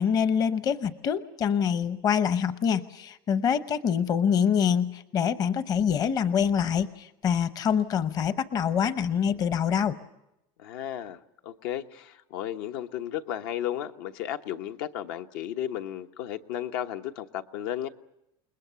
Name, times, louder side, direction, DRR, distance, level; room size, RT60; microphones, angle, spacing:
voice 1, 0.0-10.0, left 7 dB, 35° left, 12 dB, 0.8 m, -25 dB
voice 2, 10.6-17.9, left 11 dB, 75° left, 7 dB, 1.2 m, -34 dB
29.0 x 20.5 x 6.9 m, 0.85 s
cardioid pair, 155°, 12 cm